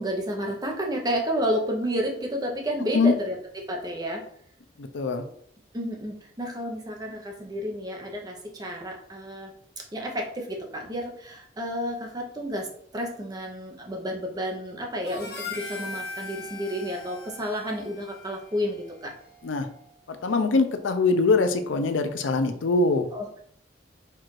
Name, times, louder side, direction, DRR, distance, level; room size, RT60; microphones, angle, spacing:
voice 1, 0.0-3.4 3.7-4.2 5.7-9.5 9.9-12.7 12.9-19.1 23.1-23.4, equal, 20° right, 1 dB, 0.7 m, -31 dB
voice 2, 4.8-5.2 19.4-19.7 20.1-23.1, left 3 dB, 85° left, 8 dB, 0.5 m, -23 dB
Harmonica, 15.1-19.5, left 3 dB, 55° left, 1.1 m, -40 dB
4.5 x 2.5 x 4.5 m, 0.64 s
head